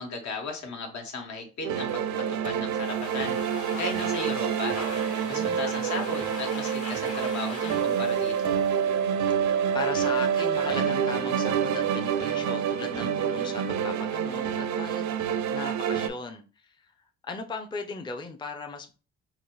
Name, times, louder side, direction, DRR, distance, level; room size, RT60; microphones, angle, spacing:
voice 1, 0.0-3.4 3.7-4.8 5.3-8.5, left 3 dB, 70° left, 1.3 m, -36 dB
sound 1, 1.6-16.1, right 8 dB, 70° right, 0.5 m, -27 dB
Domestic sounds home sounds, 2.6-9.4, left 3 dB, 50° left, 1.1 m, -41 dB
voice 2, 5.2-6.1 9.7-15.2 15.5-16.9 17.3-18.9, left 4 dB, 15° left, 0.5 m, -38 dB
3.9 x 2.5 x 3.1 m
cardioid pair, 90°, 30 cm